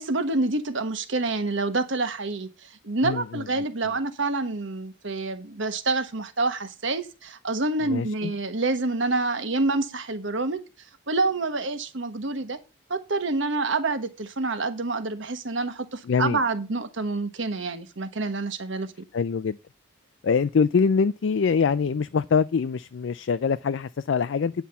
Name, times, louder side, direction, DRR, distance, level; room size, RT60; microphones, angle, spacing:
voice 1, 0.0-10.6 11.1-12.6 12.9-18.9, right 3 dB, 60° right, 1.3 m, -27 dB
voice 2, 3.0-3.4 7.8-8.3 16.1-16.4 19.1-19.6 20.2-24.5, left 5 dB, 60° left, 0.4 m, -24 dB
9.5 x 5.6 x 5.6 m
head